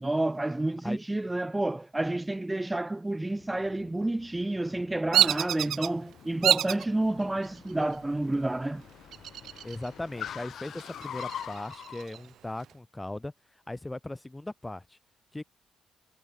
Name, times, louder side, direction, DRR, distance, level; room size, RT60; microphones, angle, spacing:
voice 1, 0.0-8.8, right 2 dB, 10° right, 0.5 m, -29 dB
Car, 3.1-12.1, left 9 dB, 65° left, 1.9 m, -45 dB
Bird vocalization bird call bird song, 5.1-5.9 6.4-6.9 7.4-7.9 9.1-9.9 10.2-10.3 10.8-12.2, right 11 dB, 70° right, 0.3 m, -27 dB
voice 2, 9.6-13.3 13.7-15.0 15.3-15.4, left 1 dB, 10° left, 0.9 m, -38 dB
cardioid pair, 90°, 0 cm